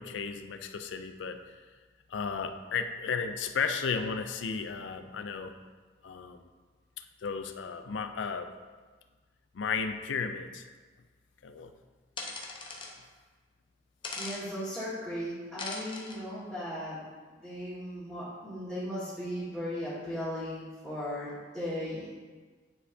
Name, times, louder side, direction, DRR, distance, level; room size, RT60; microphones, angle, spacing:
voice 1, 0.0-1.4 2.1-5.5 6.0-6.4 7.0-8.5 9.5-10.6 11.4-11.7, left 5 dB, 80° left, 8 dB, 0.4 m, -34 dB
sound 1, 12.2-12.9 14.0-14.4 15.6-16.2, left 3 dB, 25° left, 0.7 m, -39 dB
voice 2, 14.1-17.0 17.4-22.1, equal, 5° right, -15 dB, 1.7 m, -37 dB
9.8 x 4.3 x 2.7 m, 1.4 s
head